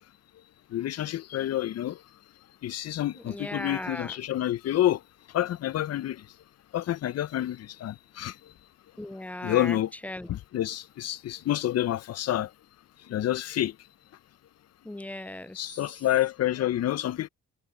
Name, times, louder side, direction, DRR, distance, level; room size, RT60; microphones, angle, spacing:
voice 1, 0.7-2.0 2.6-5.0 5.3-6.2 6.7-8.4 9.4-9.9 10.3-12.5 13.1-13.7 15.5-17.3, left 13 dB, 55° left, 0.6 m, -28 dB
voice 2, 3.2-4.2 9.0-9.8 10.0-10.3 14.8-15.6, left 1 dB, 5° left, 0.3 m, -37 dB
cardioid pair, 90°, 30 cm